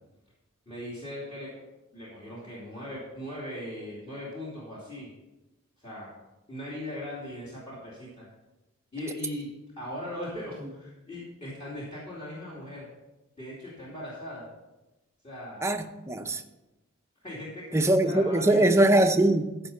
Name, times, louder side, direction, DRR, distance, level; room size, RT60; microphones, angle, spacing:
voice 1, 0.7-1.5 1.9-5.1 5.8-6.1 6.5-8.2 8.9-12.9 13.4-14.5 15.2-15.6 17.2-18.7, left 1 dB, 25° left, 2.7 m, -39 dB
voice 2, 15.6-16.4 17.7-19.5, right 1 dB, 15° right, 0.7 m, -22 dB
14.5 x 5.2 x 5.6 m
head